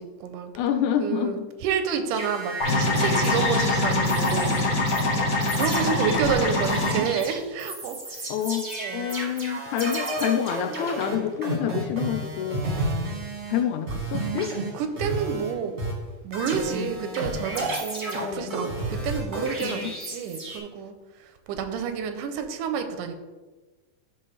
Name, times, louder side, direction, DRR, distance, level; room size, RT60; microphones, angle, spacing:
voice 1, 0.0-0.5 1.0-1.4 1.6-8.3 8.7-9.1 14.7-15.8 16.2-20.9 21.2-23.2, right 7 dB, 85° right, 8 dB, 2.1 m, -29 dB
voice 2, 0.6-1.5 8.3-8.6 8.9-12.6 13.5-14.5 18.1-18.6 19.6-19.9, left 9 dB, 80° left, 8 dB, 1.9 m, -27 dB
sound 1, 2.1-4.6 4.9-5.0 5.4-13.6 13.9-15.5 15.8-20.6, right 2 dB, 30° right, 1.2 m, -32 dB
sound 2, 2.6-7.0, left 2 dB, 50° left, 1.1 m, -24 dB
12.5 x 4.3 x 3.3 m, 1.2 s
omnidirectional pair, 3.7 m